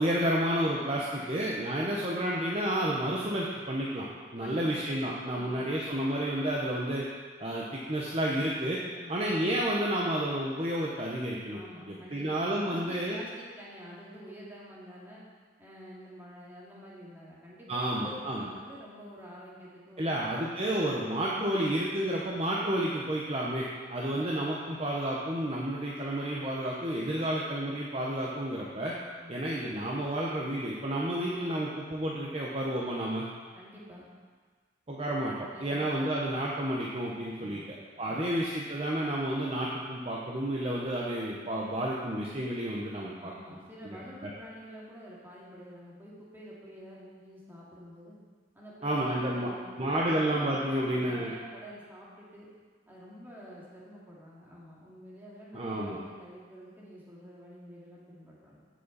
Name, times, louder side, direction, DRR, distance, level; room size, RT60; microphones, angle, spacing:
voice 1, 0.0-4.1 4.3-7.0 7.4-8.8 9.1-11.6 11.9-13.2 17.7-18.5 20.0-28.9 29.3-33.3 34.9-43.3 43.8-44.3 48.8-49.5 49.8-51.3 55.5-56.0, right 1 dB, 30° right, -4 dB, 1.0 m, -31 dB
voice 2, 4.4-4.8 5.3-5.8 8.9-9.2 11.5-15.2 15.6-20.4 24.1-24.3 27.2-27.4 29.2-29.4 33.5-34.1 35.5-35.9 37.4-37.7 43.2-48.2 48.5-52.5 52.9-58.7, equal, 10° right, -7 dB, 2.4 m, -48 dB
15.0 x 6.3 x 4.1 m, 1.5 s
head